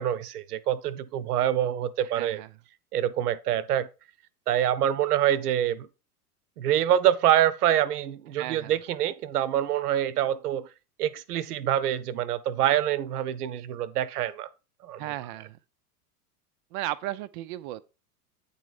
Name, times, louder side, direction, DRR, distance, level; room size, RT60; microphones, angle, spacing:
voice 1, 0.0-2.4 2.9-3.9 4.5-5.9 6.6-10.7 11.0-14.5 14.8-15.0, right 11 dB, 70° right, 0.7 m, -25 dB
voice 2, 2.0-2.5 8.3-8.8 15.0-15.6 16.7-17.8, right 15 dB, 35° right, 0.4 m, -35 dB
8.7 x 4.2 x 4.7 m
figure-of-eight pair, 90°, 47 cm